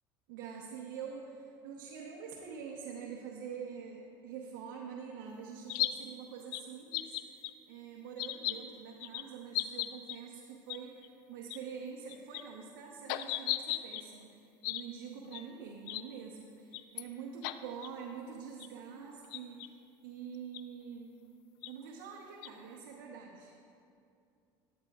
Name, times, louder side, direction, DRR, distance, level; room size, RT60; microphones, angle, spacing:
voice 1, 0.3-19.8 20.0-21.2 21.7-23.6, right 6 dB, 85° right, -1 dB, 0.9 m, -46 dB
sound 1, 5.7-5.9 6.5-6.6 6.9-7.5 8.2-8.5 9.0-9.2 9.5-10.2 10.7-10.8 11.0-11.1 11.5-11.6 12.1-12.4 13.1-14.0 14.6-14.8 15.3-15.4 15.9-16.0 16.7-17.0 17.4-17.5 17.8-17.9 18.6-18.7 19.3-19.7 20.5-20.6 21.6-21.7 22.4-22.5, left 16 dB, 85° left, 0.4 m, -35 dB
13.5 x 9.5 x 2.4 m, 2.5 s
supercardioid pair, 110°, 11 cm